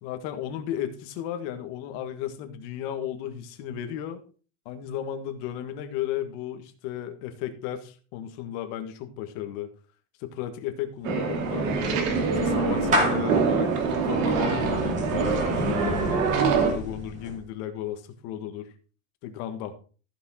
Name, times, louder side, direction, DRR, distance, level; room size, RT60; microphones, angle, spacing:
voice 1, 0.0-4.2 4.7-9.7 10.2-11.7 12.3-16.0 16.5-18.7 19.2-19.7, left 10 dB, 50° left, 8 dB, 1.7 m, -34 dB
Clapping / Meow, 11.0-17.5, equal, 20° right, 2.4 m, -32 dB
sound 1, 11.0-16.7, right 4 dB, 80° right, 2.7 m, -25 dB
14.5 x 6.3 x 4.3 m, 0.38 s
supercardioid pair, 175°, 38 cm